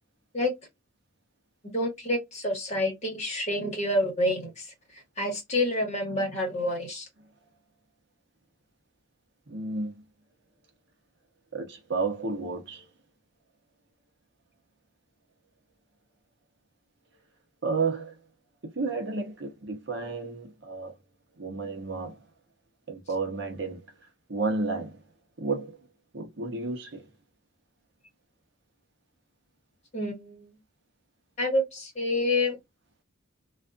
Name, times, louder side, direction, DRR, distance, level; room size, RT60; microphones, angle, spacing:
voice 1, 1.7-4.7 5.2-7.0 29.9-30.5 31.4-32.6, left 1 dB, 35° left, 1.2 m, -28 dB
voice 2, 9.5-10.0 11.5-12.9 17.6-18.1 18.6-20.9 21.4-22.2 22.9-23.9 24.3-25.0 25.4-25.8 26.1-27.0, right 3 dB, 55° right, 0.7 m, -32 dB
2.5 x 2.4 x 2.2 m
head